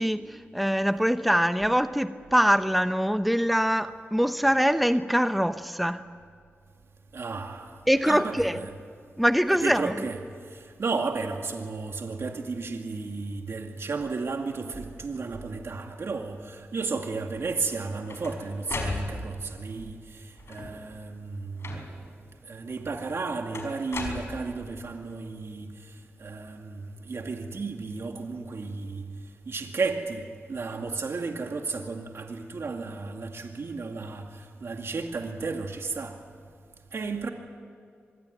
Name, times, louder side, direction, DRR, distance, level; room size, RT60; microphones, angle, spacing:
voice 1, 0.0-6.0 7.9-8.6 9.2-9.9, equal, ahead, 0.9 m, -23 dB
voice 2, 7.1-7.7 8.1-8.7 9.5-10.2 10.5-21.8 22.4-25.7 26.2-29.1 29.5-34.3 34.6-36.2 36.9-37.3, right 4 dB, 65° right, 2.2 m, -33 dB
sound 1, 17.7-19.5 20.4-20.9 21.6-22.2 23.5-24.8, left 3 dB, 65° left, 5.4 m, -36 dB
25.0 x 21.5 x 9.3 m
cardioid pair, 60°, 5 cm